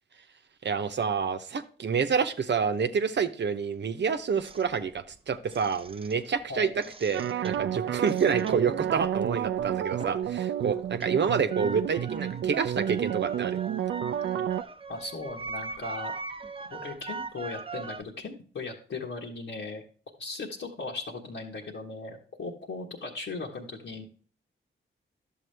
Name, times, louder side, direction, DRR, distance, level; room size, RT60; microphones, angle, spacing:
voice 1, 0.6-13.6, right 6 dB, 60° right, 9 dB, 0.8 m, -28 dB
sound 1, 4.4-6.4 6.7-10.4 10.7-18.0, right 4 dB, 25° right, 0.6 m, -41 dB
voice 2, 6.5-6.8 14.9-16.1 16.7-19.8 20.2-24.0, left 3 dB, 70° left, -4 dB, 1.4 m, -38 dB
sound 2, 7.1-14.6, right 10 dB, 75° right, 0.4 m, -30 dB
11.0 x 7.1 x 3.4 m, 0.41 s
cardioid pair, 50°, 21 cm